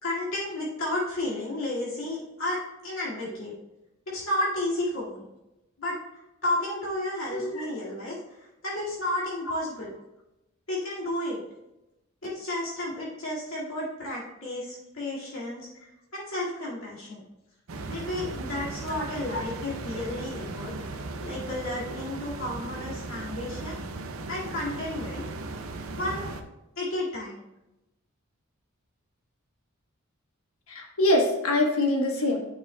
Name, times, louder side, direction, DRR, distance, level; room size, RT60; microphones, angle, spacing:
voice 1, 0.0-3.5 4.1-5.3 5.8-6.0 6.4-9.9 10.7-11.4 12.2-15.7 16.1-17.2 17.9-20.9 21.2-23.8 24.3-25.2 26.0-26.3 26.8-27.4, left 1 dB, 70° left, -6 dB, 2.3 m, -32 dB
voice 2, 7.3-7.7 19.3-19.4 30.7-32.5, left 1 dB, 90° left, 1 dB, 1.4 m, -24 dB
sound 1, 17.7-26.4, right 3 dB, 80° right, 0.6 m, -37 dB
9.2 x 6.5 x 2.3 m, 0.92 s
head